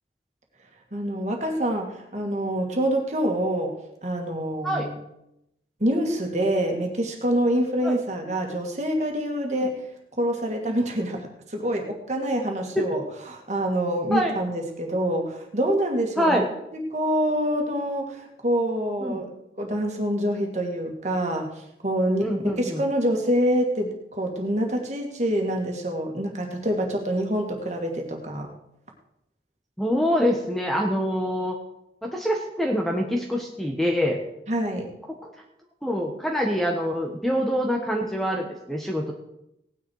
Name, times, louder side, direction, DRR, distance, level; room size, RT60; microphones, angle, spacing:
voice 1, 0.9-3.8 4.0-5.0 5.8-9.8 10.2-13.0 13.3-16.4 16.9-19.3 19.6-28.5 34.5-34.9, equal, 40° right, 1 dB, 2.4 m, -26 dB
voice 2, 16.2-16.5 19.0-19.2 22.2-22.8 29.8-31.6 32.0-34.2 35.2-35.3 35.8-39.1, equal, ahead, 1 dB, 1.3 m, -25 dB
18.0 x 9.9 x 4.9 m, 0.83 s
head